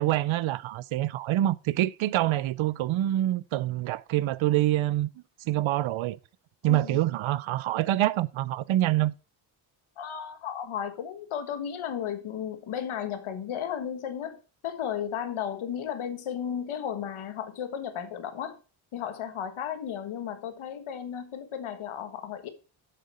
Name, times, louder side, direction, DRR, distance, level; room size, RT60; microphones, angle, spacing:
voice 1, 0.0-5.1 5.5-6.2 6.6-9.1, right 14 dB, 80° right, 0.6 m, -26 dB
voice 2, 6.6-7.0 10.0-18.6 18.9-22.5, left 8 dB, 85° left, 1.5 m, -34 dB
7.6 x 6.9 x 4.1 m
wide cardioid pair, 165°, 47 cm